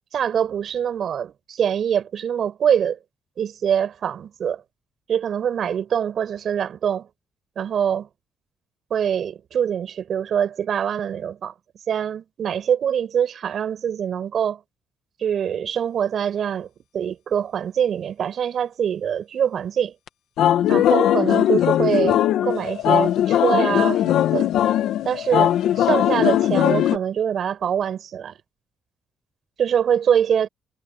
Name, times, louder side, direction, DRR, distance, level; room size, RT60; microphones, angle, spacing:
voice 1, 0.1-3.0 3.4-4.6 5.1-7.1 7.6-8.1 8.9-11.5 11.9-14.6 15.2-16.7 16.9-19.9 20.7-24.5 25.0-28.3 29.6-30.5, right 8 dB, 60° right, 6.8 m, -24 dB
sound 1, 20.1-20.2 20.4-27.0, left 11 dB, 80° left, 1.6 m, -19 dB
cardioid pair, 90°, 0 cm